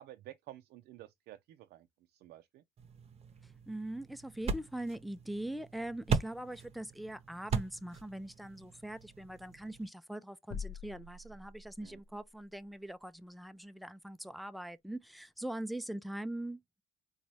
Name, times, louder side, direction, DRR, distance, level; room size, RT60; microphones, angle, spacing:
voice 1, 0.0-2.6 11.8-12.0, right 14 dB, 75° right, 0.4 m, -52 dB
sound 1, 2.8-9.9, right 5 dB, 40° right, 0.7 m, -39 dB
voice 2, 3.7-16.8, right 1 dB, ahead, 0.3 m, -42 dB
sound 2, 10.5-12.1, left 6 dB, 65° left, 0.7 m, -44 dB
4.0 x 2.3 x 3.0 m
cardioid pair, 110°, 17 cm